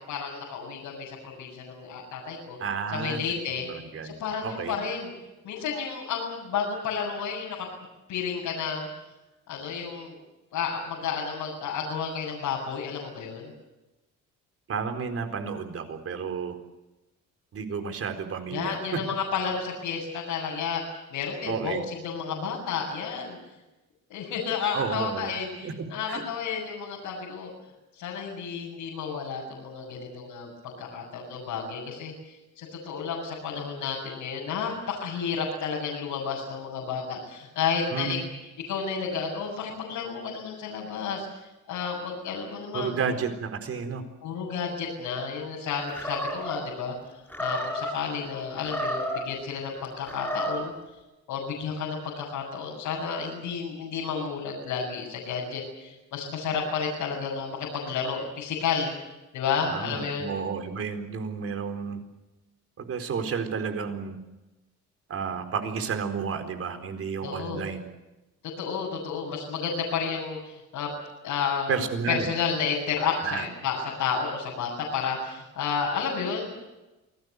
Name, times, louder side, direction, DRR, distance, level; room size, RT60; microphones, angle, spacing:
voice 1, 0.0-2.6 2.9-3.7 4.0-5.1 5.4-7.6 8.1-8.9 9.5-10.2 10.5-13.5 18.5-20.8 21.1-23.4 24.1-27.5 27.9-38.2 38.6-43.0 44.2-50.7 51.3-58.9 59.3-60.3 67.2-67.6 68.6-70.9 71.2-71.8 72.1-76.6, left 6 dB, 85° left, -4 dB, 7.6 m, -31 dB
voice 2, 2.6-3.2 3.5-4.1 4.4-4.8 14.7-16.5 17.5-19.0 21.5-21.8 24.7-25.7 26.1-26.2 37.9-38.2 42.7-44.0 59.7-62.0 62.9-64.2 65.1-67.8 71.7-72.3 73.2-73.5, right 6 dB, 50° right, 7 dB, 4.3 m, -31 dB
Animal, 45.9-46.6 47.3-48.0 48.6-49.3 50.0-50.7, equal, 5° left, 5.6 m, -31 dB
28.0 x 19.0 x 8.2 m, 1.0 s
cardioid pair, 135°, 30 cm